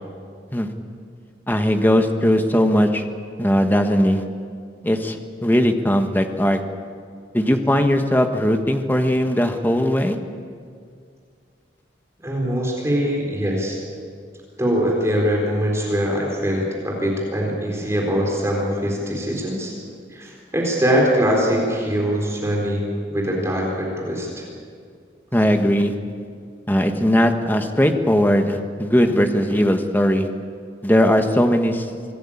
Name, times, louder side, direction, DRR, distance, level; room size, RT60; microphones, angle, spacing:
voice 1, 1.5-3.0 3.4-4.2 4.8-5.2 5.4-6.6 7.3-10.2 25.3-25.9 26.7-30.3 30.8-31.9, equal, 10° left, 5 dB, 1.4 m, -19 dB
voice 2, 12.2-13.8 14.6-19.7 20.1-24.5, equal, 15° right, -2 dB, 4.0 m, -22 dB
26.0 x 18.0 x 8.7 m, 2.2 s
head